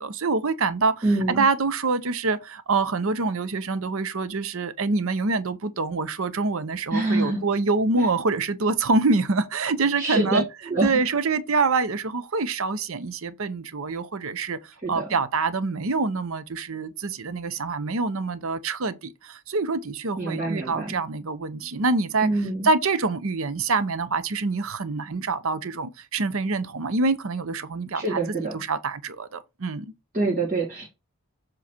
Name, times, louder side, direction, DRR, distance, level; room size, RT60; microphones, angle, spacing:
voice 1, 0.0-10.4 10.8-29.9, right 3 dB, 65° right, 0.7 m, -26 dB
voice 2, 1.0-1.4 6.9-7.4 8.0-8.1 10.0-11.0 14.8-15.0 20.2-20.9 22.2-22.7 27.9-28.6 30.1-30.9, right 2 dB, 35° right, 1.8 m, -25 dB
7.2 x 3.2 x 4.4 m
head